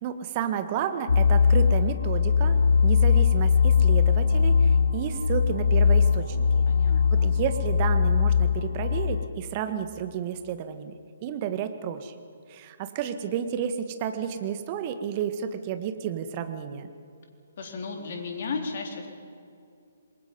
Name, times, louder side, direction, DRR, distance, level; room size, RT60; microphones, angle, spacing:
voice 1, 0.0-6.5 7.1-10.9 11.2-12.1 12.5-16.9, right 8 dB, 30° right, 9 dB, 1.7 m, -31 dB
sound 1, 1.1-9.3, left 6 dB, 65° left, 0.8 m, -21 dB
voice 2, 6.7-7.4 17.6-19.1, left 4 dB, 50° left, 3 dB, 3.9 m, -34 dB
27.5 x 22.0 x 5.4 m, 2.6 s
figure-of-eight pair, 130°, 0 cm